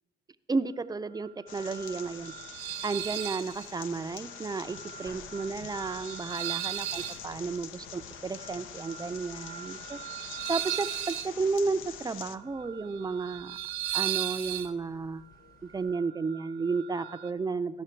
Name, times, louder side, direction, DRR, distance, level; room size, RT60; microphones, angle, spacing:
voice 1, 0.5-2.3 2.8-10.0 10.5-13.6 13.9-15.2 15.7-17.8, right 4 dB, 20° right, 11 dB, 0.5 m, -33 dB
sound 1, 1.1-17.3, right 13 dB, 85° right, 0.9 m, -38 dB
sound 2, 1.5-12.4, left 9 dB, 85° left, 0.5 m, -45 dB
sound 3, 5.0-16.0, left 3 dB, 50° left, 1.3 m, -57 dB
14.5 x 5.8 x 4.4 m, 1.2 s
cardioid pair, 90°, 20 cm